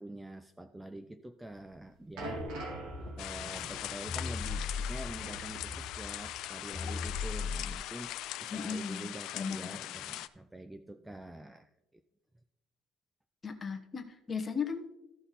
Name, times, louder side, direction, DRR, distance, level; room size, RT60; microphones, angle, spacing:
voice 1, 0.0-2.5 3.0-12.0, right 1 dB, 5° right, 10 dB, 0.4 m, -46 dB
sound 1, 1.6-6.4 6.7-6.9 7.6-7.7, right 1 dB, 80° right, 3.4 m, -45 dB
sound 2, 2.4-7.7, left 4 dB, 45° left, 1.2 m, -40 dB
sound 3, 3.2-10.3, left 14 dB, 65° left, 0.4 m, -41 dB
voice 2, 8.5-9.1 9.3-9.8 13.4-15.0, left 5 dB, 20° left, 5 dB, 1.1 m, -36 dB
14.0 x 5.9 x 4.1 m, 0.92 s
cardioid pair, 155°, 0 cm